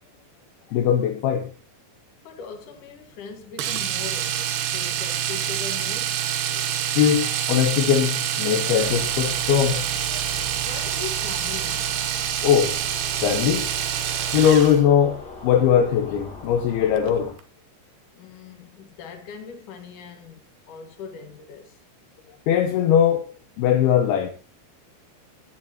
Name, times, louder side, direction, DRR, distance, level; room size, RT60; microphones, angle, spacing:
voice 1, 0.7-1.5 6.9-9.9 10.1-10.2 12.4-12.8 13.2-13.7 14.3-17.3 22.5-23.3 23.6-24.3, left 9 dB, 80° left, 2.6 m, -20 dB
voice 2, 2.2-6.2 10.7-12.0 18.1-20.4 20.7-21.8, left 6 dB, 55° left, 2.8 m, -40 dB
Domestic sounds home sounds, 3.6-14.8 17.0-17.1 17.4-17.5, right 10 dB, 75° right, 3.1 m, -26 dB
sound 1, 8.8-17.3, left 2 dB, 30° left, 2.7 m, -41 dB
16.5 x 10.5 x 2.9 m
omnidirectional pair, 4.9 m